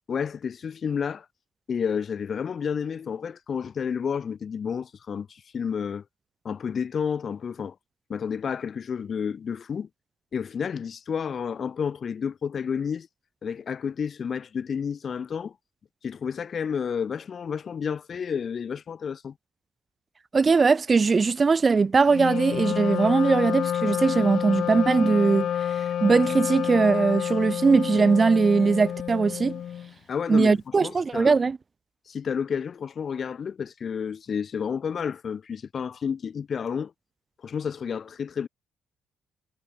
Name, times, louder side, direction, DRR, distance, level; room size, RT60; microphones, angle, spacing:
voice 1, 0.1-1.3 1.7-6.0 6.5-7.8 8.1-9.9 10.3-13.1 13.4-15.5 16.0-19.3 30.1-31.4 32.1-36.9 37.4-38.5, left 7 dB, 50° left, 1.7 m, -30 dB
voice 2, 20.3-29.5 30.3-31.6, right 4 dB, 35° right, 0.7 m, -21 dB
Wind instrument woodwind instrument, 22.1-29.9, left 9 dB, 65° left, 2.1 m, -29 dB
cardioid pair, 90°, 0 cm